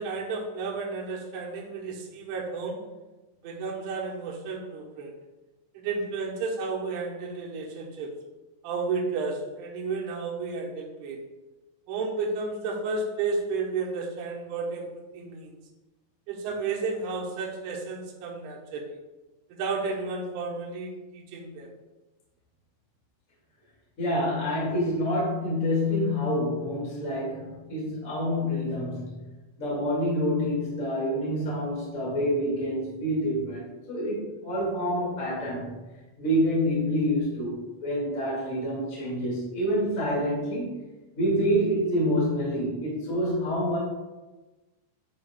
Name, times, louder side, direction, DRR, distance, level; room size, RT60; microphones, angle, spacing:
voice 1, 0.0-2.8 3.4-5.2 5.8-8.1 8.6-11.3 11.9-15.5 16.3-19.0 19.5-21.7, right 4 dB, 80° right, -2 dB, 3.5 m, -32 dB
voice 2, 24.0-29.2 29.6-35.7 36.2-40.7 41.1-43.8, equal, 30° left, -7 dB, 1.5 m, -27 dB
11.0 x 5.0 x 2.4 m, 1.1 s
omnidirectional pair, 5.5 m